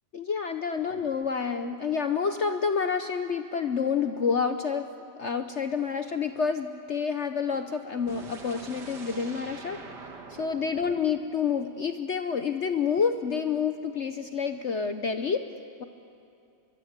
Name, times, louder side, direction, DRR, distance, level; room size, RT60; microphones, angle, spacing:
voice 1, 0.1-4.9 5.2-9.8 10.3-15.5, left 6 dB, 55° left, 8 dB, 0.8 m, -28 dB
sound 1, 8.1-12.0, right 3 dB, 60° right, 2.3 m, -45 dB
23.0 x 23.0 x 8.1 m, 2.5 s
omnidirectional pair, 2.1 m